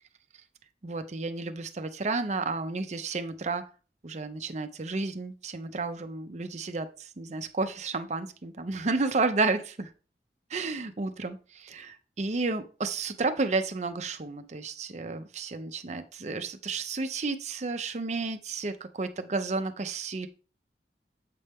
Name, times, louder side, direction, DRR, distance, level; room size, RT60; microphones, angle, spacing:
voice 1, 0.8-3.6 4.0-9.9 10.5-20.3, right 3 dB, 40° right, 9 dB, 0.6 m, -31 dB
7.6 x 4.2 x 3.5 m, 0.36 s
head